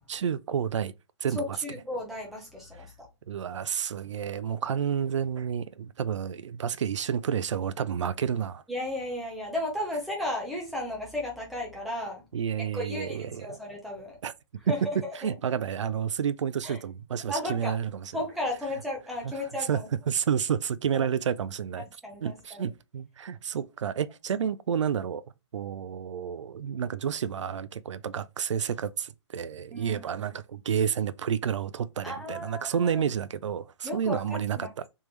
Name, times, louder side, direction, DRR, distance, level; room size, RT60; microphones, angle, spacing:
voice 1, 0.1-0.9 1.2-1.6 3.3-8.6 12.3-13.6 14.2-14.3 14.7-18.1 19.2-19.3 19.6-21.9 22.2-25.2 25.5-34.9, right 8 dB, 85° right, 0.4 m, -30 dB
voice 2, 1.3-2.9 8.7-12.2 12.6-14.2 14.7-15.3 16.6-16.8 17.3-17.8 18.1-19.9 20.9-21.0 21.8-22.7 29.7-30.0 32.0-33.0 33.8-34.7, left 1 dB, ahead, 0.7 m, -34 dB
3.4 x 3.2 x 3.1 m
hypercardioid pair, 165°, 15 cm